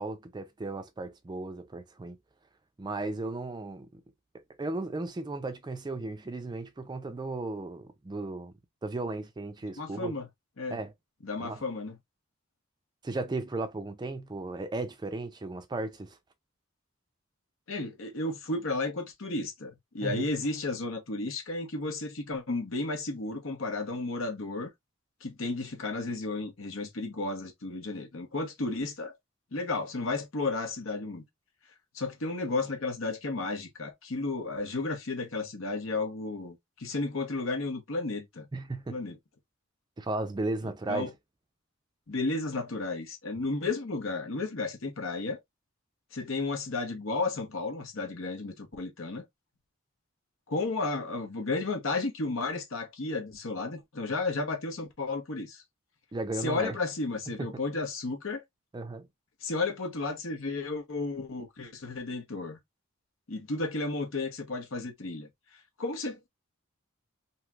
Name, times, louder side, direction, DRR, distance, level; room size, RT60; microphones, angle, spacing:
voice 1, 0.0-2.2 2.8-4.0 4.6-8.5 8.8-10.2 10.7-10.9 11.4-11.6 13.0-16.2 20.0-20.3 38.5-39.0 40.0-41.1 56.1-56.8 57.3-57.6 58.7-59.1, right 2 dB, 20° right, 0.4 m, -35 dB
voice 2, 9.8-10.2 10.6-10.8 11.2-12.0 17.7-24.7 25.2-29.1 29.5-31.2 31.9-38.5 38.9-39.2 40.9-41.1 42.1-45.4 46.1-49.2 50.5-55.6 56.4-58.4 59.4-62.6 63.3-65.3 65.8-66.3, left 3 dB, 70° left, 0.9 m, -33 dB
3.1 x 2.8 x 2.3 m
head